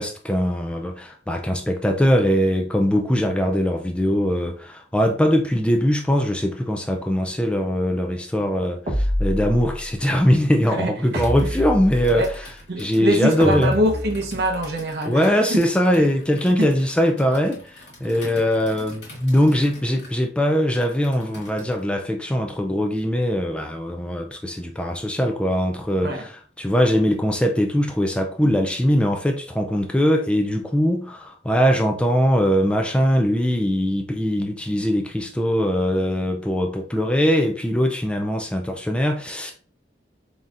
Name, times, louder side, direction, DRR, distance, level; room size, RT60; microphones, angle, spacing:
voice 1, 0.0-12.3 12.8-13.8 15.1-26.3 26.6-39.5, equal, 5° left, 0.3 m, -21 dB
sound 1, 8.9-9.9 11.1-12.4 13.4-14.6, equal, 40° right, 1.0 m, -27 dB
voice 2, 10.7-11.2 12.1-12.3 12.7-15.6 16.6-16.7 26.0-26.3, equal, 65° right, 0.7 m, -24 dB
Computer keyboard, 11.1-21.9, left 1 dB, 75° left, 1.9 m, -45 dB
4.0 x 3.5 x 2.4 m
head